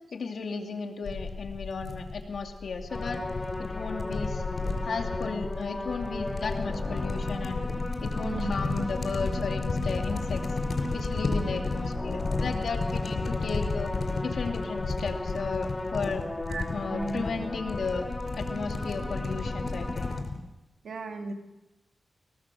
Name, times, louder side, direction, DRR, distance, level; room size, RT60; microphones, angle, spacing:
voice 1, 0.1-3.2 3.6-4.4 4.8-7.7 8.0-10.4 10.9-13.9 14.2-16.2 16.7-18.1 18.3-20.1, left 4 dB, 70° left, 3 dB, 2.6 m, -34 dB
sound 1, 1.1-20.4, left 3 dB, 50° left, 4.9 m, -33 dB
sound 2, 2.9-20.2, left 1 dB, 15° left, 1.7 m, -37 dB
voice 2, 8.2-8.9 16.5-17.3 20.8-21.3, right 2 dB, 80° right, 4 dB, 2.3 m, -35 dB
23.0 x 18.0 x 6.3 m, 1.0 s
wide cardioid pair, 120°, 0 cm